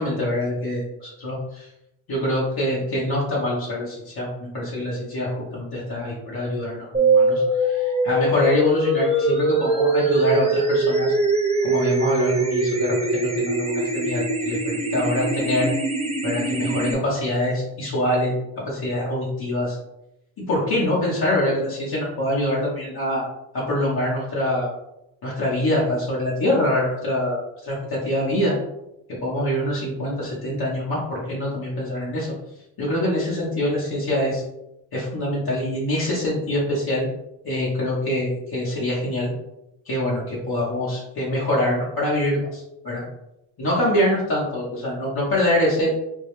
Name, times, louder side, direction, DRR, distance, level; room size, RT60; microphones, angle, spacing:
voice 1, 0.0-1.7 2.1-11.1 11.6-15.7 16.2-18.3 18.6-19.8 20.5-23.2 23.5-24.7 25.2-28.5 29.1-32.3 32.8-34.4 34.9-37.0 37.4-39.3 39.8-43.0 43.6-45.9, left 1 dB, 55° left, -6 dB, 1.1 m, -24 dB
sound 1, 6.9-16.9, right 2 dB, 15° right, 0.6 m, -22 dB
3.6 x 2.3 x 3.2 m, 0.86 s
cardioid pair, 75°, 43 cm